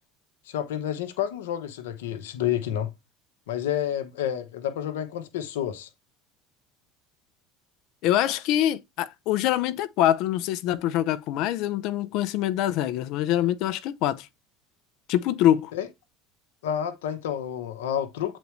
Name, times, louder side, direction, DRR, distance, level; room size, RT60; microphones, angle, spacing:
voice 1, 0.5-2.9 3.5-5.9 15.7-15.9 16.6-18.4, left 10 dB, 80° left, 1.0 m, -29 dB
voice 2, 8.0-14.3 15.1-15.7, left 12 dB, 65° left, 0.7 m, -24 dB
8.0 x 4.1 x 3.2 m
hypercardioid pair, 80°, 0 cm